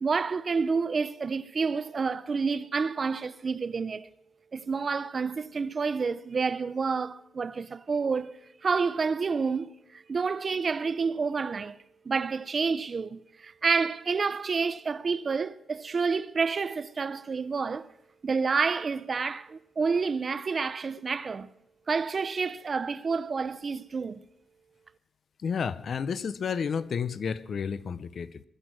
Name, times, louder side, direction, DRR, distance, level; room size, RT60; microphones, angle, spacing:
voice 1, 0.0-4.1 4.5-11.8 12.0-17.9 18.2-21.5 21.9-24.2, right 5 dB, 35° right, 0.5 m, -29 dB
voice 2, 25.4-28.4, left 6 dB, 55° left, 0.6 m, -31 dB
20.5 x 11.0 x 6.1 m
wide cardioid pair, 155°, 0 cm